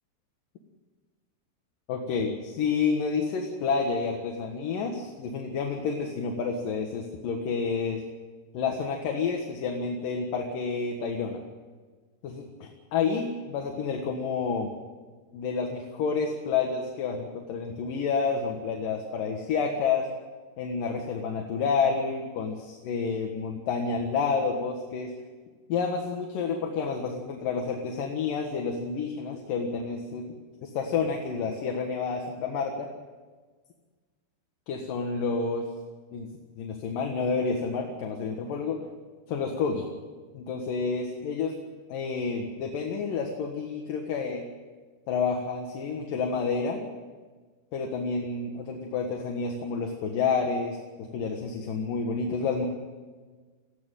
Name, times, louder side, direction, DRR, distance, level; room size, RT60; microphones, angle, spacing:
voice 1, 1.9-8.0 8.5-11.4 12.2-14.7 15.3-20.1 20.6-25.1 25.7-30.2 30.6-32.9 34.7-35.7 36.1-36.3 36.6-38.8 39.3-39.9 40.3-41.5 41.9-44.4 45.1-46.9 47.7-52.7, left 5 dB, 60° left, 2 dB, 2.9 m, -29 dB
19.5 x 15.5 x 9.0 m, 1.4 s
omnidirectional pair, 4.9 m